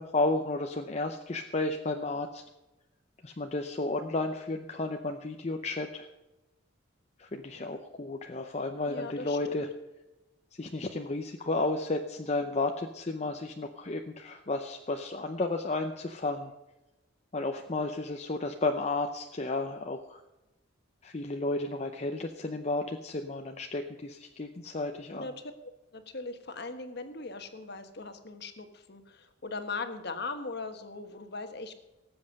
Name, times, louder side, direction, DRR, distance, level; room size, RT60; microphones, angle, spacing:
voice 1, 0.0-2.4 3.2-6.1 7.2-9.7 10.6-16.5 17.3-20.2 21.0-25.3, left 2 dB, 35° left, 4 dB, 0.7 m, -32 dB
voice 2, 8.9-9.6 25.1-25.5 25.9-31.8, left 3 dB, 55° left, 7 dB, 1.3 m, -39 dB
18.0 x 7.8 x 6.5 m, 0.99 s
head